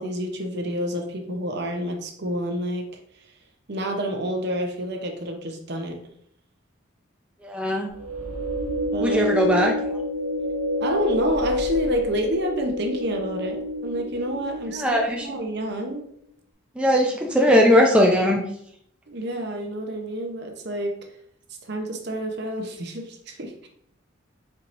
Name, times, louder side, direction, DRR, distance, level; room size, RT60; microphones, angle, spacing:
voice 1, 0.0-2.9 3.7-6.0 8.9-9.3 10.8-16.0 19.1-21.0 21.7-23.7, right 1 dB, 55° right, 3 dB, 0.8 m, -29 dB
voice 2, 7.4-7.9 9.0-9.7 14.8-15.3 16.8-18.4, equal, 5° right, -1 dB, 0.5 m, -19 dB
sound 1, 7.9-15.3, left 1 dB, 35° right, 1.3 m, -28 dB
4.5 x 4.4 x 2.6 m, 0.69 s
head